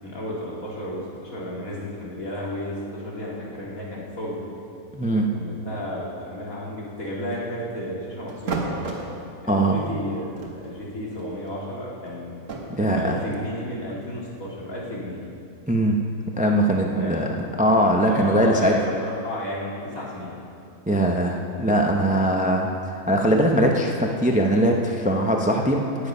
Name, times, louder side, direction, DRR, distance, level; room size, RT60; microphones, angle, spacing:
voice 1, 0.0-4.4 5.3-8.8 9.4-12.4 12.8-15.2 16.9-17.2 18.0-20.3, left 1 dB, 65° left, -5 dB, 2.8 m, -33 dB
voice 2, 4.9-5.3 9.5-9.9 12.8-13.2 15.7-16.0 16.4-18.7 20.9-26.1, right 1 dB, 10° right, 1 dB, 0.5 m, -21 dB
sound 1, 6.8-7.6 8.3-9.1 9.8-10.0 10.3-12.6, right 4 dB, 60° right, 1.6 m, -33 dB
17.5 x 7.1 x 5.5 m, 2.5 s
omnidirectional pair, 1.6 m